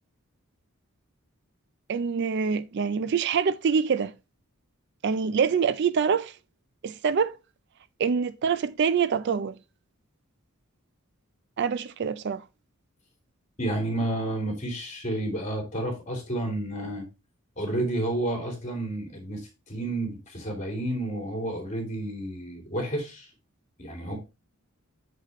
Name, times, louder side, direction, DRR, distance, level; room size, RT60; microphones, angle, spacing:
voice 1, 1.9-4.1 5.0-6.3 6.8-7.3 8.0-9.5 11.6-12.4, right 6 dB, 50° right, 0.4 m, -25 dB
voice 2, 13.6-17.1 17.6-23.3 23.8-24.2, right 1 dB, 35° left, 3.0 m, -31 dB
6.6 x 6.6 x 3.0 m
head